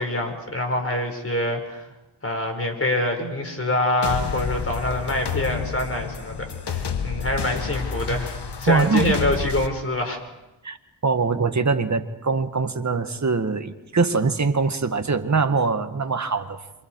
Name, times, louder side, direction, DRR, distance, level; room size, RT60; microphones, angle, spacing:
voice 1, 0.0-1.8 2.2-10.2, left 1 dB, 30° left, 4 dB, 5.3 m, -25 dB
sound 1, 4.0-9.7, left 6 dB, 60° left, 1.7 m, -29 dB
voice 2, 8.7-9.2 10.6-10.8 11.0-16.6, right 4 dB, 40° right, 8 dB, 1.8 m, -22 dB
27.5 x 26.0 x 4.8 m, 0.98 s
cardioid pair, 65°, 45 cm